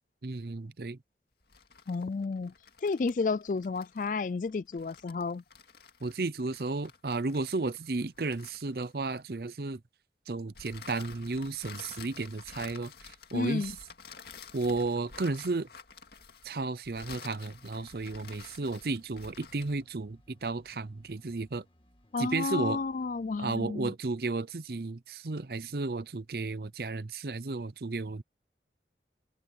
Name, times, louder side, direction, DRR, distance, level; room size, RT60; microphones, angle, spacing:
voice 1, 0.2-1.0 6.0-9.8 10.3-13.7 14.5-15.7 16.4-21.6 22.2-22.8 23.4-28.2, right 3 dB, 60° right, 0.7 m, -33 dB
sound 1, 1.4-9.2 10.5-19.8, left 5 dB, 65° left, 2.2 m, -51 dB
voice 2, 1.9-2.5 2.8-5.4 13.3-13.7 22.1-23.9, left 4 dB, 45° left, 0.4 m, -31 dB
sound 2, 17.5-23.7, equal, 30° left, 2.0 m, -64 dB
head